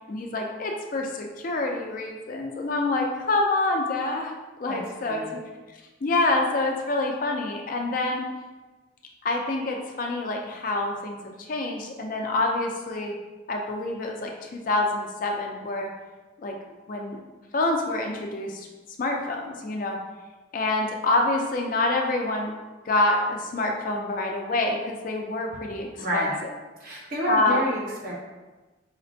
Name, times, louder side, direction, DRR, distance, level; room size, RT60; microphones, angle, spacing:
voice 1, 0.1-5.3 6.0-8.3 9.2-13.1 13.5-15.9 16.4-16.6 16.9-17.2 17.5-18.7 19.0-20.0 20.5-22.5 22.9-26.2 27.3-27.6, left 2 dB, 45° left, 2 dB, 0.4 m, -27 dB
voice 2, 4.7-5.3 26.0-26.4 26.8-28.1, equal, 50° right, -5 dB, 1.0 m, -29 dB
4.9 x 2.1 x 2.6 m, 1.2 s
head